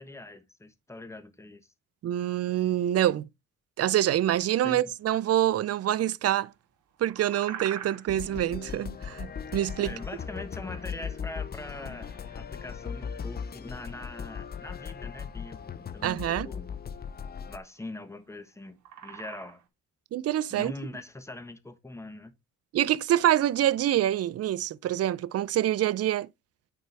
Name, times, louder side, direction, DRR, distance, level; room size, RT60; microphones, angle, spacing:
voice 1, 0.0-1.7 4.6-4.9 9.8-16.8 17.5-19.6 20.5-22.3, left 2 dB, 10° left, 1.2 m, -42 dB
voice 2, 2.0-3.3 3.8-6.5 7.0-10.0 16.0-16.5 20.1-20.7 22.7-26.3, right 12 dB, 55° right, 0.5 m, -26 dB
sound 1, 6.7-19.6, right 9 dB, 75° right, 1.7 m, -46 dB
sound 2, 8.1-17.6, left 7 dB, 30° left, 0.6 m, -38 dB
9.3 x 4.5 x 3.4 m
cardioid pair, 90°, 30 cm